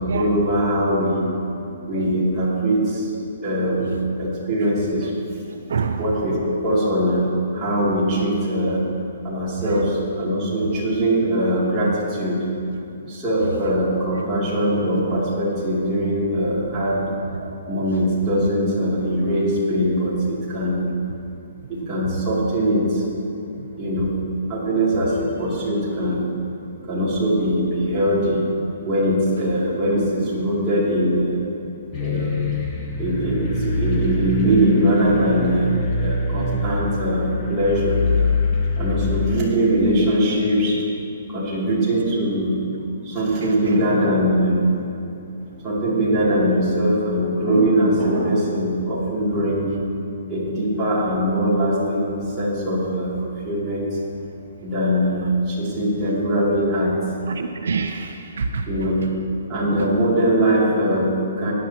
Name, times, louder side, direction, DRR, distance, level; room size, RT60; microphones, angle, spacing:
voice 1, 0.1-1.3 1.9-3.1 3.4-5.1 6.0-8.8 9.2-12.5 13.1-17.1 17.7-20.9 21.7-23.1 23.8-24.2 24.5-26.3 26.8-28.5 28.8-31.4 32.0-32.4 33.0-38.0 38.8-40.9 41.3-42.6 43.0-44.7 45.6-49.7 50.3-54.0 54.6-57.0 58.7-59.0 59.5-61.5, equal, 15° right, -10 dB, 2.9 m, -21 dB
voice 2, 5.5-6.0 8.7-8.9 9.7-9.8 10.7-10.8 13.0-13.1 14.1-14.2 17.4-17.8 23.6-23.7 32.2-32.3 43.4-43.8 57.3-58.7 59.8-59.9, right 5 dB, 70° right, 6 dB, 0.6 m, -28 dB
sound 1, 31.9-39.4, left 2 dB, 20° left, 1.1 m, -24 dB
18.0 x 10.5 x 3.0 m, 2.7 s
hypercardioid pair, 170°, 0 cm